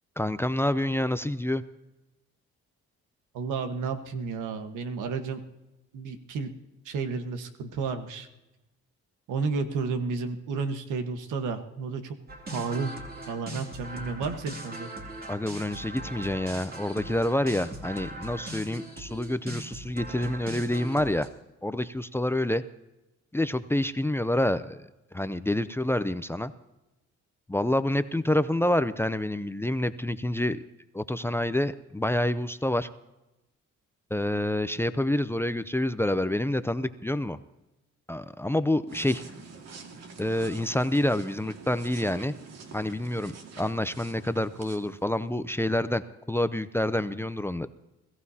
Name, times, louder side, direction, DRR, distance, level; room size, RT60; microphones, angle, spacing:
voice 1, 0.2-1.6 15.3-21.3 21.6-22.6 23.3-24.9 25.1-26.5 27.5-30.6 30.9-32.9 34.1-37.4 38.1-39.2 40.2-42.3 42.7-46.0 46.3-47.7, left 1 dB, 10° left, 12 dB, 0.5 m, -27 dB
voice 2, 3.3-5.4 5.9-6.5 6.8-8.3 9.3-12.1 12.5-12.9 13.3-14.9, right 4 dB, 90° right, 7 dB, 1.4 m, -32 dB
sound 1, 12.3-21.3, right 1 dB, 30° right, 2.7 m, -40 dB
sound 2, 38.9-45.3, right 4 dB, 60° right, 2.0 m, -46 dB
22.0 x 15.0 x 2.8 m, 0.99 s
cardioid pair, 90°, 30 cm